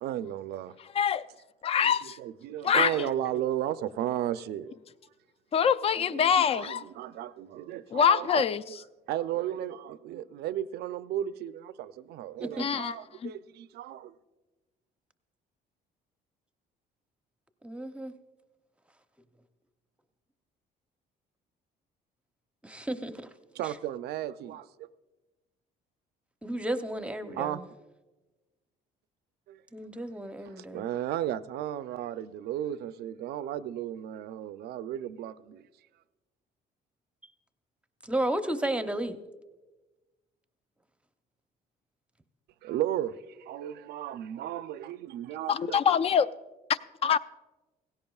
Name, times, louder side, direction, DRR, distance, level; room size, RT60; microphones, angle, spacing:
voice 1, 0.0-0.8 1.8-4.7 5.6-5.7 6.0-8.8 9.1-14.1 23.5-24.9 27.2-27.6 29.5-29.6 30.1-35.7 42.6-45.8, right 11 dB, 70° right, 0.5 m, -34 dB
voice 2, 1.6-2.2 2.6-3.1 5.5-6.8 7.9-8.6 12.6-13.0 13.2-13.3 45.5-46.3 46.7-47.2, left 7 dB, 35° left, 0.4 m, -24 dB
voice 3, 17.6-18.1 22.6-23.3 23.6-23.7 26.4-27.7 29.7-30.8 38.0-39.2, right 1 dB, 5° right, 0.7 m, -33 dB
17.5 x 16.0 x 2.3 m
cardioid pair, 110°, 17 cm